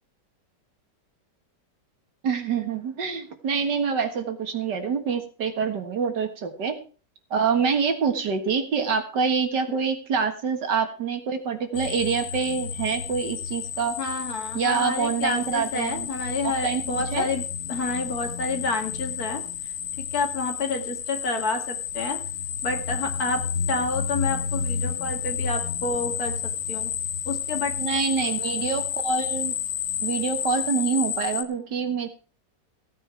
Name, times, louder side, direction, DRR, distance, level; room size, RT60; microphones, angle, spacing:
voice 1, 2.2-6.8 7.3-14.0 14.5-16.1 16.4-16.8 17.1-17.3 27.8-29.5 30.0-32.1, right 6 dB, 75° right, 7 dB, 2.2 m, -26 dB
sound 1, 11.7-31.4, left 7 dB, 85° left, 1.6 m, -31 dB
voice 2, 14.0-17.4 17.7-19.4 20.0-22.2 22.6-23.4 23.7-26.3 26.7-26.9 27.3-27.7, left 3 dB, 60° left, 4 dB, 2.7 m, -29 dB
15.5 x 9.1 x 4.6 m, 0.38 s
omnidirectional pair, 1.9 m